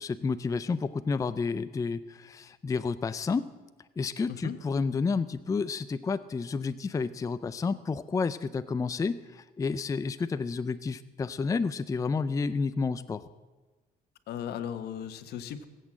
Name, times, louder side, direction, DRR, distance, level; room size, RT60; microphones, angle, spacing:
voice 1, 0.0-3.5 4.0-13.2, left 4 dB, 20° left, 13 dB, 0.4 m, -30 dB
voice 2, 14.3-15.7, left 9 dB, 70° left, 11 dB, 1.2 m, -36 dB
19.5 x 8.2 x 7.5 m, 1.3 s
cardioid pair, 110°, 17 cm